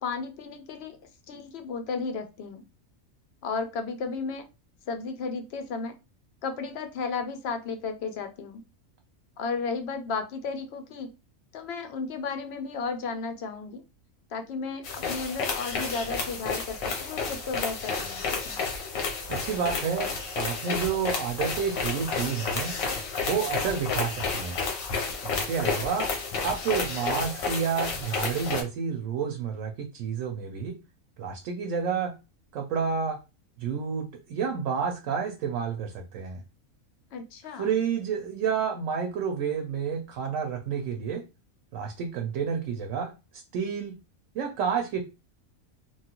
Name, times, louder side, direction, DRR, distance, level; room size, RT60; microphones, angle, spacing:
voice 1, 0.0-1.0 1.3-2.6 3.4-4.5 4.9-6.0 6.4-8.6 9.4-11.1 11.5-13.8 14.3-18.6 37.1-37.7, left 4 dB, 65° left, 7 dB, 0.7 m, -34 dB
sound 1, 14.8-28.6, left 4 dB, 90° left, 1.2 m, -31 dB
voice 2, 19.3-22.8 23.3-24.6 25.2-26.1 26.4-30.8 31.2-32.1 32.5-33.2 33.6-36.4 37.6-41.3 41.7-44.0 44.3-45.0, right 6 dB, 75° right, 4 dB, 0.9 m, -30 dB
3.0 x 2.3 x 2.9 m, 0.28 s
omnidirectional pair, 1.4 m